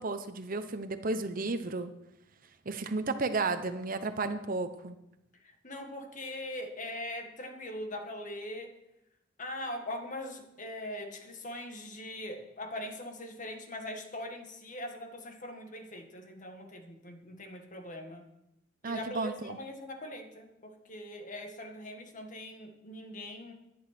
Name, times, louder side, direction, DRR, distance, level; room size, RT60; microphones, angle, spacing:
voice 1, 0.0-1.9 2.6-5.0 18.8-19.6, right 3 dB, 45° right, 10 dB, 0.9 m, -33 dB
voice 2, 5.4-8.8 9.4-18.3 18.8-23.5, left 1 dB, 40° left, 4 dB, 1.8 m, -41 dB
11.5 x 10.5 x 6.0 m, 0.87 s
head